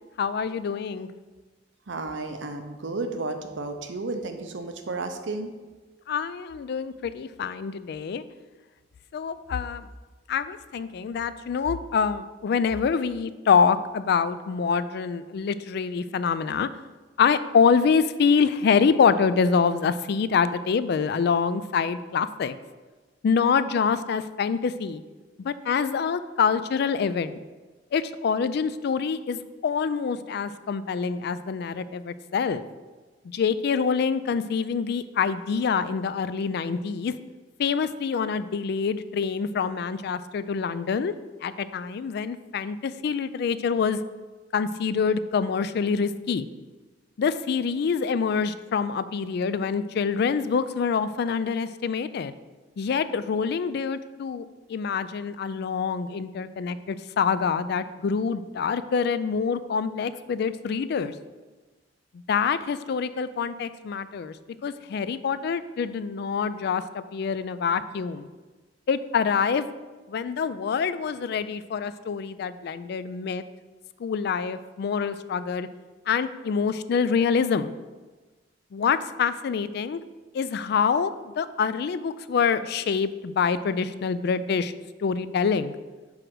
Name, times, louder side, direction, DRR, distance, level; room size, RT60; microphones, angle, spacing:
voice 1, 0.2-1.1 6.1-8.2 9.1-9.9 10.3-16.7 17.2-22.6 23.2-25.0 25.4-27.4 27.9-32.6 33.2-37.2 37.6-41.1 41.4-44.0 44.5-46.5 47.2-52.3 52.8-61.1 62.3-64.3 64.6-68.3 68.9-69.7 70.1-73.4 74.0-75.7 76.1-77.7 78.7-80.0 80.3-84.7 85.0-85.8, left 6 dB, 60° left, 14 dB, 0.3 m, -26 dB
voice 2, 1.9-5.5, right 3 dB, 80° right, 7 dB, 0.7 m, -32 dB
4.9 x 4.8 x 6.1 m, 1.3 s
head